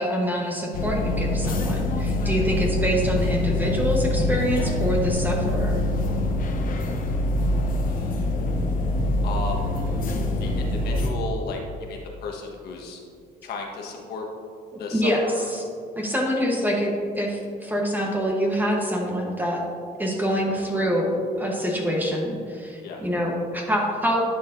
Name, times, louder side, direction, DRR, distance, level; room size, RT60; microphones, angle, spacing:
voice 1, 0.0-5.8 14.7-15.6 16.0-19.6 20.0-24.2, equal, 10° right, -1 dB, 1.1 m, -25 dB
sound 1, 0.7-11.1, left 1 dB, 55° left, 1.0 m, -25 dB
voice 2, 7.9-8.3 9.2-9.6 10.4-13.0 13.4-14.3 14.8-15.5 22.8-23.0, left 4 dB, 75° left, 0 dB, 1.4 m, -34 dB
11.0 x 6.5 x 2.6 m, 2.4 s
cardioid pair, 110°, 17 cm